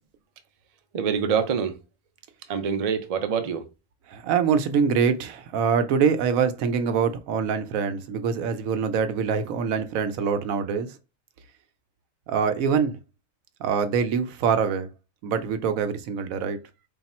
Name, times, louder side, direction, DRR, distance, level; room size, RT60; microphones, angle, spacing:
voice 1, 0.9-1.8 2.5-3.7, right 7 dB, 55° right, 0.4 m, -25 dB
voice 2, 4.1-10.9 12.3-13.0 13.6-14.9 15.2-16.6, right 6 dB, 85° right, 1.0 m, -24 dB
3.5 x 2.4 x 4.1 m
omnidirectional pair, 1.4 m